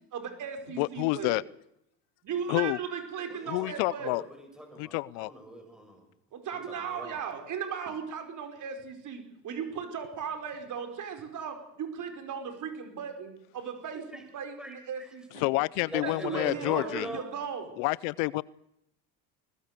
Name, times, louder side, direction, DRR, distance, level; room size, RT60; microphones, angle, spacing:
voice 1, 0.1-1.4 2.2-4.2 6.3-15.5 16.0-17.7, right 7 dB, 50° right, 6 dB, 5.2 m, -37 dB
voice 2, 0.8-1.4 2.5-2.8 3.5-4.2 4.8-5.3 15.4-17.1 17.8-18.4, left 22 dB, 85° left, 22 dB, 0.7 m, -28 dB
voice 3, 3.3-6.0 6.7-7.2 14.1-14.2 14.6-14.8 15.9-17.2, equal, ahead, 4 dB, 6.9 m, -41 dB
21.5 x 20.0 x 6.8 m, 0.79 s
supercardioid pair, 100°, 38 cm